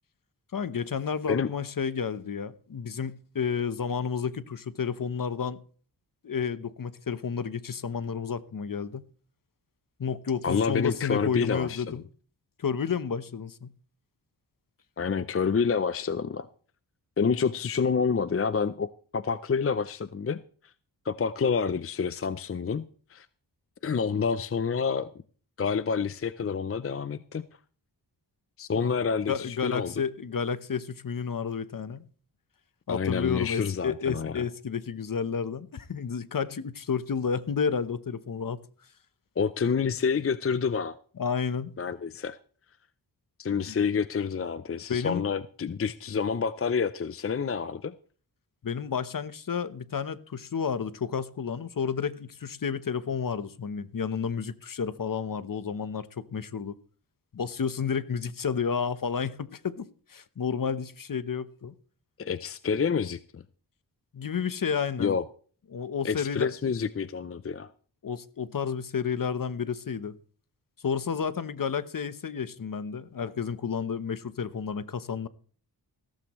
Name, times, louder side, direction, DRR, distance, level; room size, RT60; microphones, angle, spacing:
voice 1, 0.5-5.6 6.2-9.0 10.0-12.0 12.6-13.7 28.8-28.9 29.3-32.0 32.9-38.6 41.2-41.8 43.7-43.8 44.9-45.3 48.6-56.7 57.3-61.7 64.1-65.2 65.7-66.5 68.0-70.1 70.8-75.3, left 6 dB, 50° left, 1.0 m, -31 dB
voice 2, 10.4-11.9 15.0-16.5 17.2-20.4 21.0-23.3 23.8-25.1 25.6-27.5 28.6-29.9 32.9-34.4 39.4-40.9 41.8-42.4 43.4-47.9 62.2-63.4 65.0-65.2 66.0-67.7, left 6 dB, 35° left, 0.5 m, -28 dB
15.5 x 14.0 x 3.1 m
wide cardioid pair, 85°, 41 cm